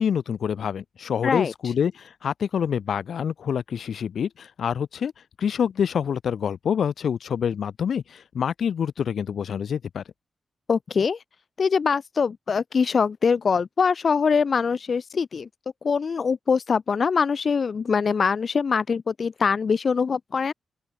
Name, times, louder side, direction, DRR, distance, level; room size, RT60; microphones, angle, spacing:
voice 1, 0.0-5.1 5.4-10.0, left 7 dB, 75° left, 4.6 m, -26 dB
voice 2, 10.7-11.2 11.6-15.5 15.8-20.5, left 5 dB, 50° left, 4.8 m, -23 dB
open air
wide cardioid pair, 130°, 0 cm